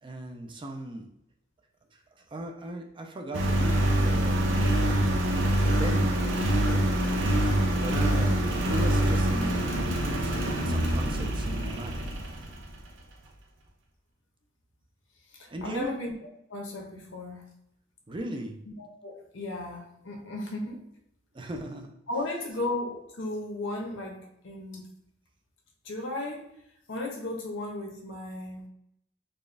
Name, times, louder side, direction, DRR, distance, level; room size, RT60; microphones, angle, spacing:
voice 1, 0.0-1.1 2.3-4.5 5.5-6.2 6.6-6.9 7.8-8.3 8.7-12.1 15.5-15.9 18.1-18.6 21.3-21.9, right 1 dB, 25° right, 4 dB, 0.4 m, -37 dB
Engine, 3.3-12.8, right 1 dB, 75° right, 0.6 m, -25 dB
voice 2, 15.3-16.1 16.5-17.4 18.7-20.8 22.1-24.9 25.8-26.5 26.9-28.6, left 2 dB, 70° left, 0 dB, 0.9 m, -35 dB
4.1 x 2.3 x 3.3 m, 0.77 s
head